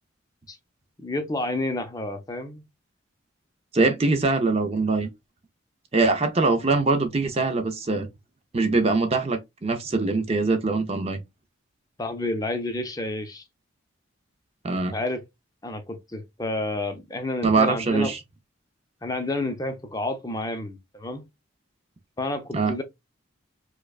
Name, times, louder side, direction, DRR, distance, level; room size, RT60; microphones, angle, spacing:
voice 1, 1.0-2.6 12.0-13.4 14.9-15.2 15.6-18.1 19.0-21.2 22.2-22.8, left 2 dB, 20° left, 0.5 m, -30 dB
voice 2, 3.7-5.1 5.9-8.1 8.5-11.2 14.6-15.0 17.4-18.2 22.5-22.7, right 3 dB, 30° right, 0.5 m, -23 dB
4.8 x 2.2 x 2.3 m
head